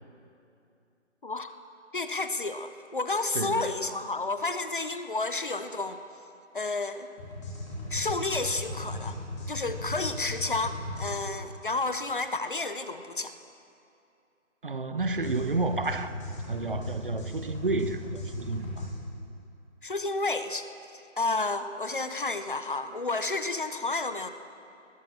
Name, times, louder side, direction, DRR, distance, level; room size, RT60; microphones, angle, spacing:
voice 1, 1.2-1.5 1.9-6.0 6.5-7.1 7.9-9.2 9.5-13.3 19.8-20.6 21.2-24.3, left 3 dB, 45° left, 11 dB, 0.6 m, -31 dB
voice 2, 3.3-3.8 14.6-16.1 16.5-18.9, right 3 dB, 45° right, 11 dB, 0.7 m, -31 dB
sound 1, 7.2-11.1 15.0-18.9, left 1 dB, 25° left, 3.4 m, -37 dB
19.5 x 9.2 x 7.3 m, 2.6 s
figure-of-eight pair, 170°, 38 cm